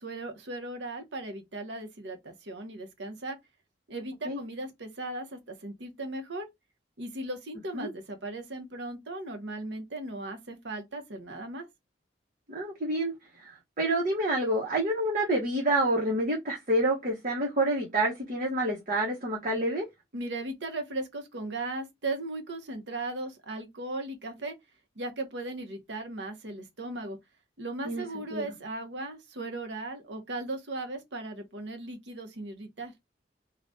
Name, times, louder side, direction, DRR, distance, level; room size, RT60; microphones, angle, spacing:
voice 1, 0.0-3.4 3.9-6.5 7.0-11.7 20.1-24.6 25.0-27.2 27.6-32.9, right 2 dB, 85° right, 0.9 m, -37 dB
voice 2, 12.5-13.1 13.4-19.8 27.8-28.5, right 1 dB, 45° right, 1.0 m, -28 dB
3.4 x 2.3 x 2.6 m
head